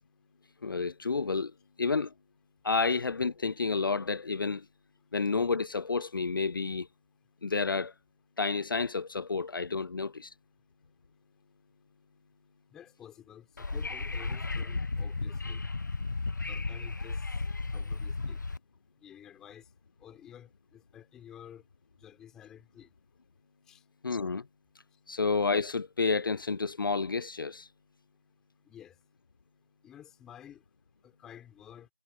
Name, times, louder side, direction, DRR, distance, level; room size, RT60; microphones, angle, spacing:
voice 1, 0.6-1.5 1.8-2.1 2.6-4.7 5.1-6.9 7.4-7.9 8.4-10.3 24.0-24.5 25.1-27.7, left 4 dB, 80° left, 0.4 m, -30 dB
voice 2, 12.7-15.6 16.5-17.4 17.7-18.4 19.0-19.7 20.0-21.6 22.0-22.9 23.7-23.8 28.7-29.0 29.8-30.6 31.0-31.9, left 10 dB, 5° left, 4.3 m, -52 dB
Wind / Subway metro underground, 13.6-18.6, left 3 dB, 60° left, 1.0 m, -34 dB
figure-of-eight pair, 170°, 11 cm